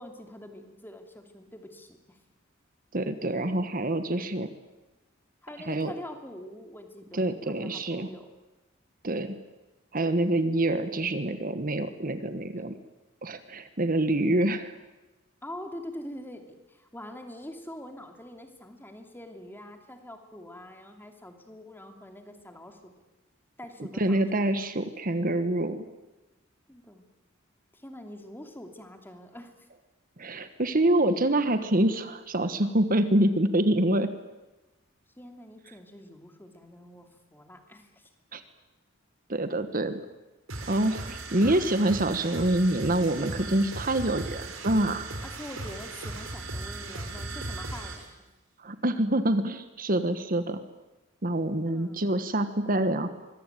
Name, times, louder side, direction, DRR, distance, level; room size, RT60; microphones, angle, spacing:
voice 1, 0.0-2.2 5.4-8.3 15.4-22.9 23.6-24.7 26.7-27.1 27.7-29.7 35.2-38.1 41.1-41.2 45.2-48.0 51.7-52.1, left 1 dB, 10° left, 5 dB, 2.8 m, -45 dB
voice 2, 2.9-4.5 5.7-5.9 7.1-8.1 9.0-9.4 9.9-12.7 13.2-14.7 24.0-25.8 30.2-34.1 38.3-38.4 39.3-40.0 40.7-45.1 48.6-50.6 51.2-53.1, right 1 dB, 45° right, 10 dB, 1.4 m, -26 dB
sound 1, 40.5-48.1, right 2 dB, 90° right, 5.3 m, -37 dB
24.5 x 22.0 x 9.2 m, 1.1 s
head